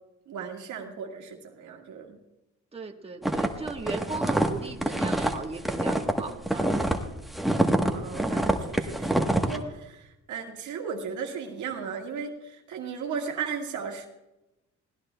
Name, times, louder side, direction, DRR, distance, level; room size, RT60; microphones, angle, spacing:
voice 1, 0.3-2.2 7.9-14.1, right 6 dB, 75° right, 2 dB, 1.7 m, -36 dB
voice 2, 2.7-6.7, right 3 dB, 20° right, 2 dB, 1.3 m, -37 dB
sound 1, 3.2-7.0 7.3-9.6, right 1 dB, ahead, 1.1 m, -25 dB
20.0 x 17.0 x 2.2 m, 0.99 s
cardioid pair, 90°, 30 cm